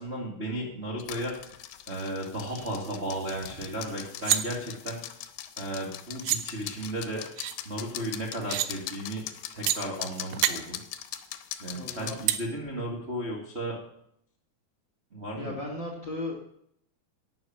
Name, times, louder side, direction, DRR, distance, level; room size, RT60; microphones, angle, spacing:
voice 1, 0.0-1.3 1.9-5.0 5.6-7.2 7.6-9.2 9.5-10.8 11.6-13.8 15.1-15.5, right 1 dB, 35° right, -3 dB, 1.1 m, -34 dB
sound 1, 1.0-12.4, left 12 dB, 80° left, 2.8 m, -41 dB
sound 2, 2.5-4.3, right 4 dB, 65° right, 3.5 m, -49 dB
sound 3, 3.3-3.4 3.7-4.4 5.8-5.9 6.2-6.4 7.4-7.6 8.3-8.7 9.7-9.8 10.2-10.5 12.3-12.4, right 13 dB, 80° right, 3.0 m, -27 dB
voice 2, 11.7-12.2 15.3-16.4, left 2 dB, 40° left, 0 dB, 1.7 m, -36 dB
11.5 x 7.6 x 8.9 m, 0.72 s
omnidirectional pair, 5.1 m